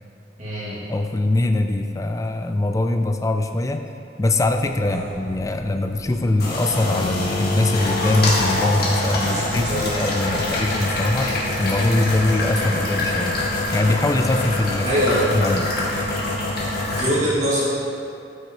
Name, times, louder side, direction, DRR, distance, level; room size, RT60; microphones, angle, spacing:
voice 1, 0.4-0.8 4.8-5.0 9.1-9.8 10.2-10.4 12.6-12.8 14.8-15.3 16.9-17.6, equal, 40° right, -9 dB, 2.2 m, -24 dB
voice 2, 0.9-3.8 4.2-11.3 11.6-13.4 13.7-14.9 15.3-15.7, left 2 dB, 20° left, 6 dB, 0.4 m, -22 dB
sound 1, 4.4-17.1, left 2 dB, 60° left, 1.8 m, -25 dB
13.0 x 6.5 x 3.0 m, 2.5 s
head